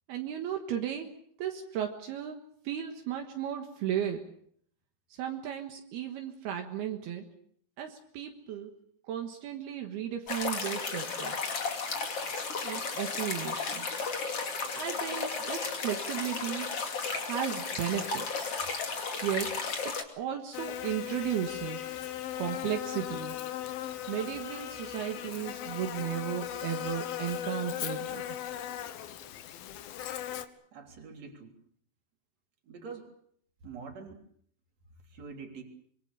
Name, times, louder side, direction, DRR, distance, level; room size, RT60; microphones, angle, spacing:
voice 1, 0.1-1.1 1.4-2.4 2.7-4.3 5.1-7.3 7.8-8.8 9.1-11.5 12.6-14.0 14.7-16.7 17.3-18.5 19.2-22.0 22.4-23.4 24.1-28.2, right 10 dB, 75° right, 3 dB, 3.4 m, -35 dB
sound 1, 10.3-20.0, left 5 dB, 40° left, 3.2 m, -34 dB
Buzz, 20.5-30.5, left 11 dB, 70° left, 2.9 m, -38 dB
voice 2, 30.7-31.5 32.7-33.1 33.6-34.2 35.1-35.6, right 5 dB, 45° right, 3 dB, 4.4 m, -44 dB
25.5 x 23.5 x 6.8 m, 0.65 s
omnidirectional pair, 4.7 m